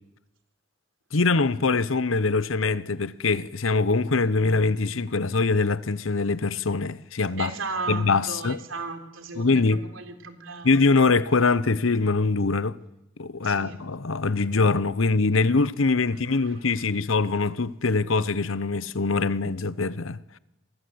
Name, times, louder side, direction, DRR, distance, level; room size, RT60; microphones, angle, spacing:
voice 1, 1.1-7.5 7.9-8.6 9.4-9.8 10.6-12.8 13.2-20.2, left 3 dB, 85° left, 0.9 m, -23 dB
voice 2, 7.4-10.8 13.4-13.8 16.3-16.5, right 4 dB, 85° right, 3.7 m, -35 dB
28.5 x 23.0 x 7.9 m
head